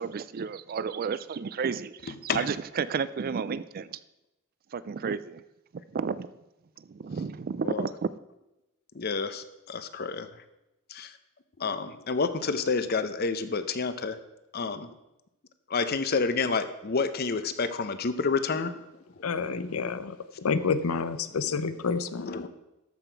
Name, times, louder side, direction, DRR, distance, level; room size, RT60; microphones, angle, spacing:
voice 1, 0.0-4.0 4.7-5.4 5.9-6.3 6.8-8.1, right 6 dB, 45° right, 0.4 m, -32 dB
voice 2, 2.1-2.5 7.6-7.9 8.9-10.3 10.9-11.2 11.6-14.2 14.5-14.9 15.7-18.9 19.2-19.7 21.4-21.5 22.2-22.5, left 4 dB, 50° left, 0.7 m, -29 dB
voice 3, 19.2-22.5, left 5 dB, 90° left, 0.6 m, -29 dB
13.0 x 5.9 x 4.5 m
head